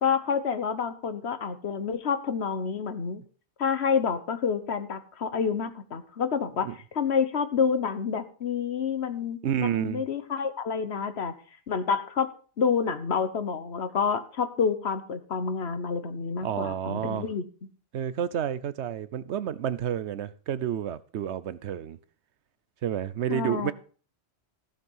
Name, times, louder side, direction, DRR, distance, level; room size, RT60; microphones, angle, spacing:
voice 1, 0.0-3.2 3.6-6.7 6.9-11.3 11.7-12.3 12.6-17.4 23.3-23.7, left 6 dB, 75° left, 1.4 m, -28 dB
voice 2, 9.4-10.0 16.4-17.3 17.9-22.0 22.8-23.7, right 10 dB, 85° right, 1.0 m, -30 dB
14.5 x 6.5 x 5.5 m
omnidirectional pair, 1.1 m